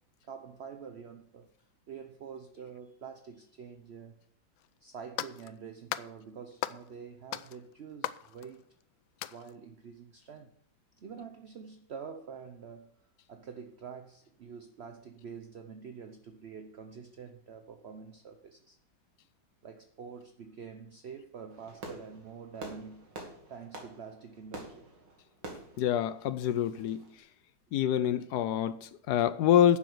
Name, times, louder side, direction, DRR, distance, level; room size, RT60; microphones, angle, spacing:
voice 1, 0.2-4.2 4.8-8.6 9.3-10.5 11.0-13.0 13.3-18.8 19.6-23.1 23.5-24.9, right 6 dB, 55° right, 0.7 m, -46 dB
sound 1, 4.6-4.7 5.2-5.5 5.9-6.1 6.6-6.9 7.3-8.8 9.2-9.5, left 14 dB, 85° left, 1.3 m, -38 dB
Fireworks, 21.5-27.1, right 2 dB, 70° right, 2.5 m, -47 dB
voice 2, 25.8-27.2 27.7-29.8, left 10 dB, 70° left, 1.1 m, -26 dB
10.5 x 7.3 x 6.7 m
omnidirectional pair, 2.0 m